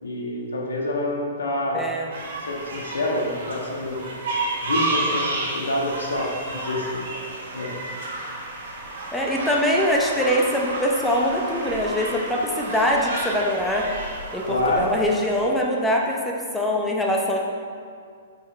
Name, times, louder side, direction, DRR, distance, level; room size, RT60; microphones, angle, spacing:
voice 1, 0.0-1.9 2.4-4.0 4.6-7.0 7.5-7.8 14.4-14.9, left 1 dB, 85° left, -2 dB, 1.5 m, -27 dB
voice 2, 1.7-2.1 9.1-13.9 14.3-17.4, equal, 5° left, -2 dB, 0.8 m, -23 dB
sound 1, 2.1-15.4, right 2 dB, 65° right, 1.6 m, -31 dB
6.0 x 5.8 x 4.3 m, 2.1 s
hypercardioid pair, 130°, 0 cm